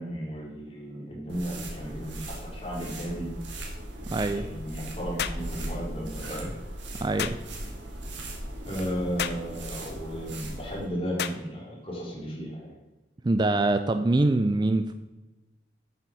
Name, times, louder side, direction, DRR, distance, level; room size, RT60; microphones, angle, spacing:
voice 1, 0.0-2.2 2.5-3.3 4.4-6.5 8.6-12.7, equal, 30° left, -3 dB, 3.1 m, -34 dB
sound 1, 1.3-10.9, right 1 dB, 75° right, 2.0 m, -38 dB
voice 2, 4.1-4.5 7.0-7.4 13.2-14.9, right 2 dB, 25° right, 9 dB, 0.4 m, -24 dB
sound 2, 5.2-5.5 7.2-7.4 9.2-9.5 11.2-11.4, left 8 dB, 55° left, 0.5 m, -31 dB
7.8 x 7.1 x 6.1 m, 1.1 s
head